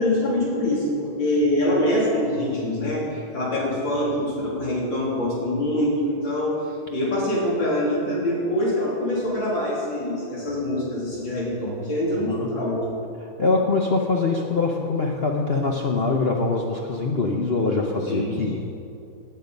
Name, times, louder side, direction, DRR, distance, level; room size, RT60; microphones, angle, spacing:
voice 1, 0.0-6.6 6.9-12.8 18.1-18.4, left 1 dB, 70° left, -5 dB, 3.9 m, -24 dB
voice 2, 13.4-18.6, left 3 dB, 50° left, 0 dB, 0.7 m, -23 dB
16.5 x 9.1 x 5.2 m, 2.7 s
omnidirectional pair, 2.1 m